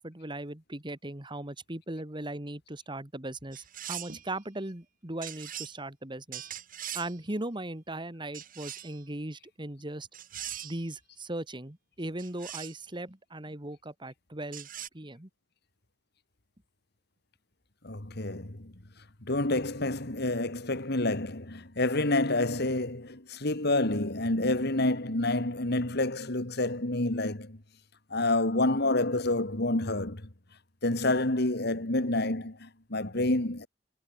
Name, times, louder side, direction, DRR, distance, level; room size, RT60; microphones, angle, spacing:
voice 1, 0.0-6.5 6.9-10.1 10.6-14.7 14.9-15.3, right 1 dB, 25° right, 2.0 m, -38 dB
sound 1, 3.5-4.3 5.2-5.8 6.3-7.2 8.3-9.0 10.1-10.8 12.2-12.8 14.5-14.9, right 11 dB, 45° right, 2.3 m, -41 dB
voice 2, 17.8-18.7 19.2-27.6 28.1-30.3 30.8-33.7, left 2 dB, 55° left, 2.4 m, -28 dB
head